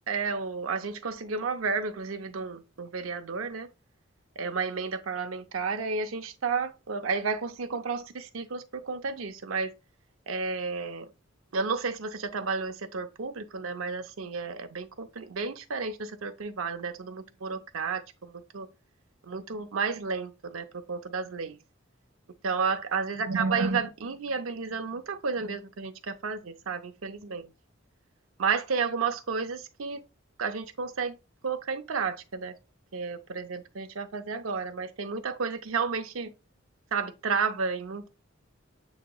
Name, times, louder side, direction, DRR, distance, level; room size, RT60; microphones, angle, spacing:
voice 1, 0.1-3.7 4.4-9.7 10.3-11.1 11.5-18.7 19.3-21.6 22.4-27.5 28.4-30.0 30.4-31.1 31.4-32.5 32.9-36.3 36.9-38.1, right 5 dB, 85° right, 0.6 m, -32 dB
7.8 x 2.8 x 2.2 m
head